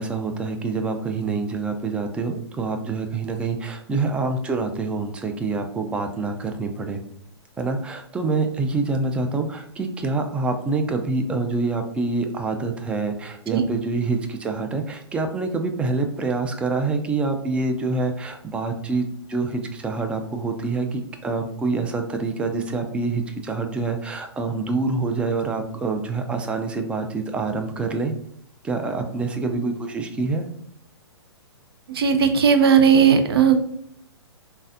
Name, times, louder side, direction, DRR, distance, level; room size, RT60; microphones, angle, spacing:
voice 1, 0.0-7.0 7.6-28.1 28.6-30.5, right 3 dB, 10° right, 5 dB, 0.3 m, -26 dB
voice 2, 31.9-33.7, right 7 dB, 60° right, 7 dB, 0.6 m, -16 dB
3.9 x 3.4 x 2.5 m, 0.68 s
figure-of-eight pair, 120°, 14 cm